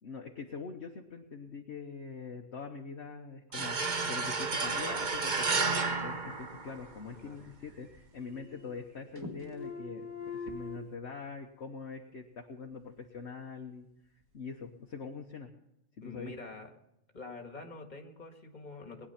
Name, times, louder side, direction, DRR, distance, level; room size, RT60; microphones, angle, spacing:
voice 1, 0.0-5.6 6.0-13.9 14.3-15.5 16.0-16.3, left 5 dB, 55° left, 1 dB, 1.3 m, -43 dB
sound 1, 3.5-7.1, right 4 dB, 35° right, 1.1 m, -32 dB
sound 2, 6.7-7.7 8.0-8.9 9.1-10.8, left 4 dB, 15° right, 1.9 m, -43 dB
voice 2, 7.1-7.5 16.0-16.7 17.1-19.1, left 3 dB, 35° left, 3 dB, 1.8 m, -46 dB
20.5 x 10.0 x 5.8 m, 0.83 s
omnidirectional pair, 1.4 m